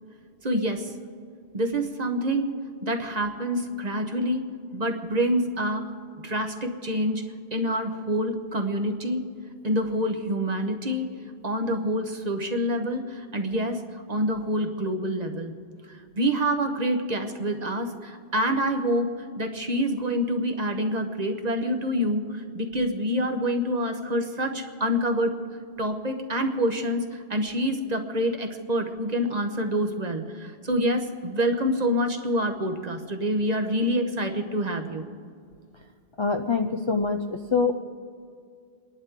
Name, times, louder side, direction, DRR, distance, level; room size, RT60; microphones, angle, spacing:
voice 1, 0.4-0.9 1.5-2.6 2.8-4.5 4.7-5.9 6.2-7.2 7.5-9.3 9.6-11.1 11.4-15.6 15.9-25.4 25.8-35.1, equal, 40° right, 6 dB, 1.1 m, -27 dB
voice 2, 36.2-37.7, left 4 dB, 35° left, 4 dB, 0.5 m, -25 dB
29.0 x 11.0 x 3.7 m, 2.2 s
omnidirectional pair, 1.1 m